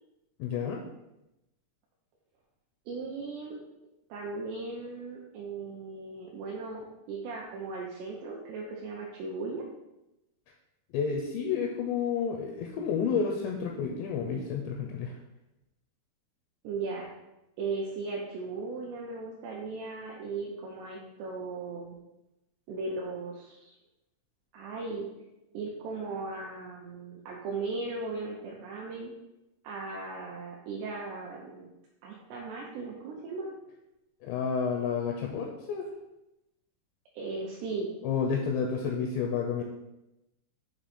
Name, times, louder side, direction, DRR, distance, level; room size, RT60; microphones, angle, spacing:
voice 1, 0.4-0.8 10.9-15.2 34.2-35.9 38.0-39.6, left 6 dB, 85° left, 1 dB, 2.5 m, -30 dB
voice 2, 2.9-3.6 4.1-9.6 16.6-17.1 17.6-22.0 22.7-23.7 24.5-25.1 25.5-29.1 29.6-31.7 32.0-33.5 37.1-37.9, right 3 dB, 80° right, -3 dB, 2.5 m, -37 dB
7.7 x 3.0 x 4.2 m, 0.93 s
omnidirectional pair, 5.5 m